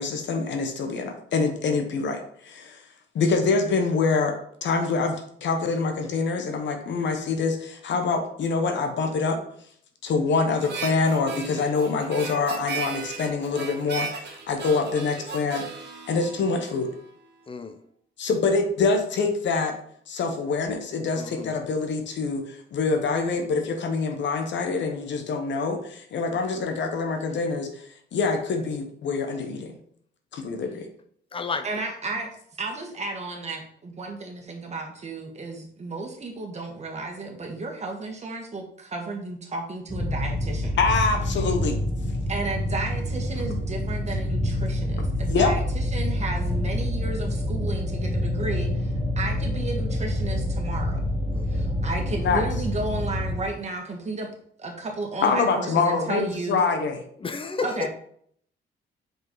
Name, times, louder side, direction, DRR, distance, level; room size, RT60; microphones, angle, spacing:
voice 1, 0.0-2.8 3.1-9.4 10.0-15.7 16.1-16.9 18.2-19.8 20.1-29.8 30.3-30.9 40.8-41.8 45.0-45.5 52.2-52.4 55.2-57.0, left 4 dB, 65° left, 5 dB, 1.0 m, -25 dB
Harmonica, 10.6-17.1, right 5 dB, 55° right, 1.4 m, -36 dB
voice 2, 17.5-17.8 21.2-21.5 31.3-31.6 51.3-51.7 57.2-57.8, left 4 dB, 25° left, 8 dB, 0.7 m, -32 dB
voice 3, 31.6-32.3 32.6-40.8 42.3-51.0 51.5-54.3 54.6-56.6 57.6-57.9, right 3 dB, 35° right, 2 dB, 1.6 m, -33 dB
sound 1, 39.9-53.4, left 1 dB, 5° right, 1.7 m, -27 dB
5.3 x 4.6 x 3.9 m, 0.64 s
cardioid pair, 90°, 20 cm